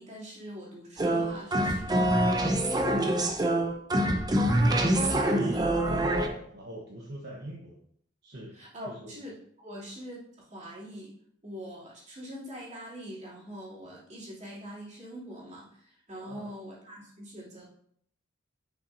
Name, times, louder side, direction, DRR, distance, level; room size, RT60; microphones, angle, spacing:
voice 1, 0.0-2.6 8.5-11.1 11.4-17.7, equal, 35° right, -7 dB, 2.7 m, -43 dB
sound 1, 1.0-6.3, right 1 dB, 20° right, 0.7 m, -25 dB
voice 2, 5.0-7.8 8.2-8.5 8.9-9.2 16.1-16.5, right 1 dB, 60° right, -2 dB, 1.0 m, -41 dB
10.0 x 5.7 x 2.6 m, 0.67 s
head